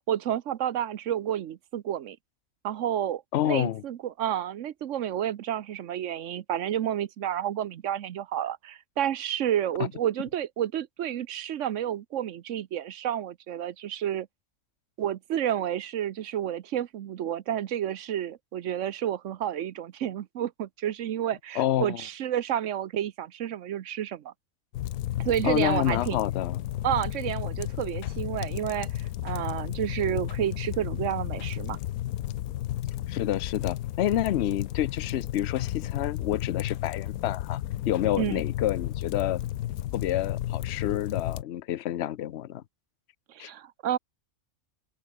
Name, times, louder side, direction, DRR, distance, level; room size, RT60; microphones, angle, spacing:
voice 1, 0.0-2.2 2.6-14.3 15.0-24.3 25.2-26.2 26.8-31.8 38.2-38.4 43.3-44.0, right 10 dB, 65° right, 1.0 m, -30 dB
voice 2, 3.3-3.8 21.6-22.0 25.4-26.6 33.1-37.6 37.9-39.4 39.9-42.6 43.4-43.5, left 12 dB, 60° left, 0.9 m, -28 dB
sound 1, 24.7-41.4, left 13 dB, 85° left, 1.1 m, -33 dB
open air
omnidirectional pair, 1.5 m